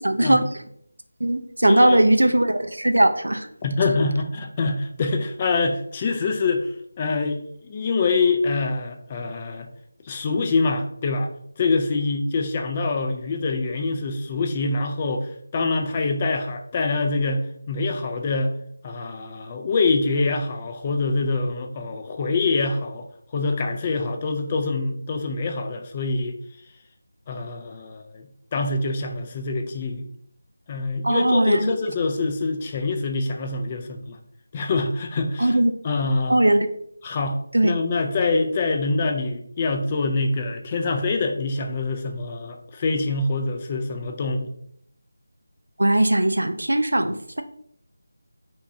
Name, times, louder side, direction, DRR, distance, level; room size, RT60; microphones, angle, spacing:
voice 1, 0.0-0.4 1.2-3.5 31.0-31.7 35.4-35.7 36.3-36.7 37.5-37.7 45.8-47.4, right 1 dB, 90° right, 8 dB, 0.4 m, -19 dB
voice 2, 1.6-2.0 3.6-6.7 7.0-9.7 10.0-11.3 11.6-18.5 18.8-23.1 23.3-26.4 27.3-30.1 30.7-34.2 34.5-35.6 35.8-36.4 37.0-44.5, left 3 dB, 25° left, 4 dB, 0.3 m, -25 dB
3.6 x 2.9 x 2.6 m, 0.68 s
figure-of-eight pair, 170°, 0 cm